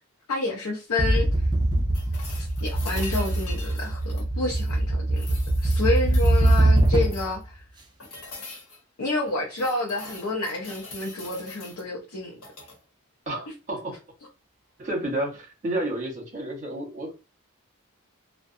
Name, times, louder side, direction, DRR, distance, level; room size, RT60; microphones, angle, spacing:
voice 1, 0.3-1.3 2.4-5.3 5.6-7.6 9.0-12.3, left 2 dB, 90° left, 0.6 m, -29 dB
sound 1, 1.0-7.4, right 1 dB, 20° right, 0.5 m, -22 dB
sound 2, 1.9-4.8 5.1-7.4 8.0-8.8 9.2-11.8 12.3-12.8 14.8-14.9, left 3 dB, 75° left, 1.1 m, -43 dB
voice 2, 13.3-13.9 14.8-17.1, right 1 dB, 35° right, 1.0 m, -30 dB
2.5 x 2.2 x 2.5 m
head